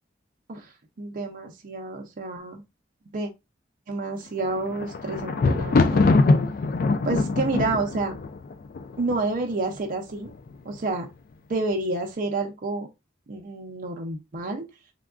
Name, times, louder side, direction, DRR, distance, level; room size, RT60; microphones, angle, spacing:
voice 1, 1.0-2.6 3.1-3.3 3.9-6.1 7.0-8.2 9.0-10.3 10.6-11.1 11.5-12.9 13.3-14.6, right 3 dB, 50° right, 0.5 m, -29 dB
Thunder, 4.4-9.5 10.2-10.8 11.0-11.1, left 3 dB, 50° left, 0.3 m, -23 dB
3.5 x 2.2 x 2.4 m
head